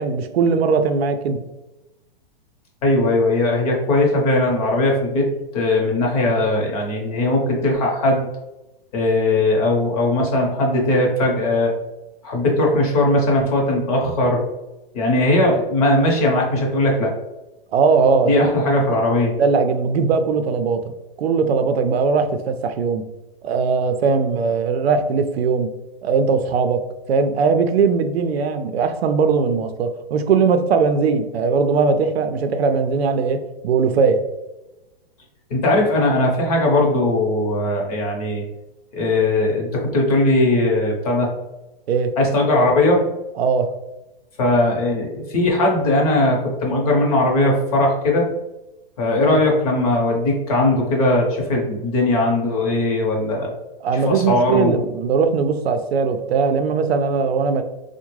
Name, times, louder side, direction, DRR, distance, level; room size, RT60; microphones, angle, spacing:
voice 1, 0.0-1.4 17.7-18.6 19.4-20.9 21.2-23.1 23.4-25.7 26.0-26.8 27.1-34.2 41.9-42.1 43.4-43.7 49.2-49.4 53.8-57.6, right 5 dB, 85° right, 8 dB, 0.5 m, -19 dB
voice 2, 2.8-5.3 5.5-8.3 8.9-11.7 12.2-14.4 14.9-17.1 18.2-19.3 35.5-38.4 38.9-41.3 42.2-43.0 44.4-48.3 49.0-53.5 53.9-54.7, left 2 dB, 40° left, -1 dB, 0.8 m, -19 dB
3.5 x 2.1 x 3.1 m, 1.0 s
hypercardioid pair, 160°, 30 cm